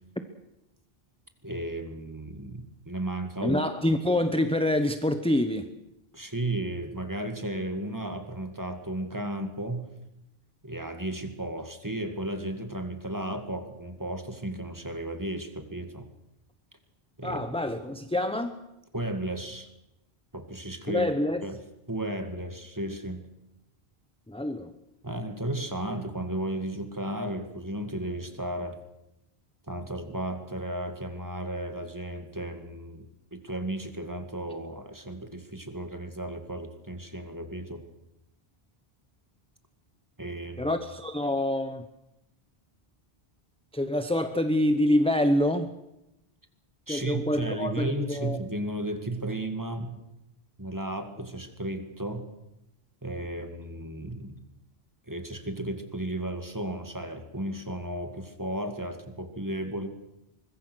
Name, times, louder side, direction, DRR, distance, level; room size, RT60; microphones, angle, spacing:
voice 1, 1.4-3.6 6.1-9.9 10.6-16.1 17.2-17.5 18.9-19.7 20.3-21.1 21.4-21.6 21.9-23.2 25.0-28.8 29.7-33.1 33.3-37.8 40.2-40.7 46.9-50.0 50.6-52.3 53.0-54.4 55.1-59.9, right 1 dB, 20° right, 7 dB, 2.1 m, -34 dB
voice 2, 3.4-5.7 17.2-18.6 20.9-21.4 24.3-24.7 40.6-41.8 43.7-45.7 46.9-48.4, left 1 dB, 5° left, 9 dB, 0.9 m, -26 dB
24.0 x 21.5 x 6.3 m, 0.89 s
omnidirectional pair, 1.0 m